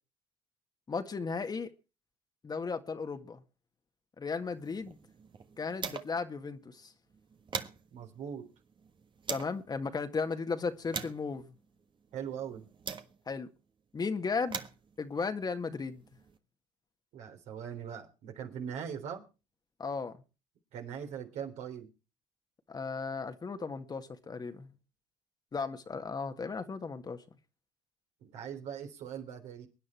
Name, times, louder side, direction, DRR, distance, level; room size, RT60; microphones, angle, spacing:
voice 1, 0.9-1.7 2.4-3.4 4.2-5.0 5.6-6.9 9.3-11.5 13.3-13.5 13.9-14.6 15.0-16.0 19.8-20.1 22.7-24.7 25.5-27.2, left 4 dB, 30° left, 1.8 m, -35 dB
sound 1, 4.5-6.3 6.6-6.7 7.1-9.6 10.2-13.5 14.2-16.4, right 6 dB, 40° right, 1.6 m, -43 dB
voice 2, 7.9-8.5 12.1-12.7 17.1-19.3 20.7-21.9 28.2-29.7, right 8 dB, 65° right, 3.7 m, -41 dB
23.5 x 9.9 x 4.5 m
hypercardioid pair, 65°, 13 cm